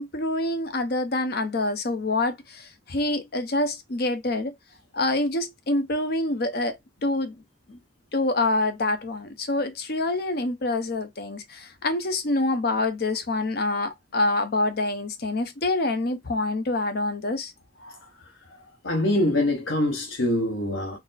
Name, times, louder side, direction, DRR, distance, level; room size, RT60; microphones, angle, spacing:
voice 1, 0.0-4.5 4.9-7.4 7.7-7.8 8.1-17.5, left 2 dB, 55° left, 0.7 m, -26 dB
voice 2, 18.8-21.0, left 1 dB, 80° left, 1.0 m, -24 dB
4.1 x 2.0 x 4.0 m
head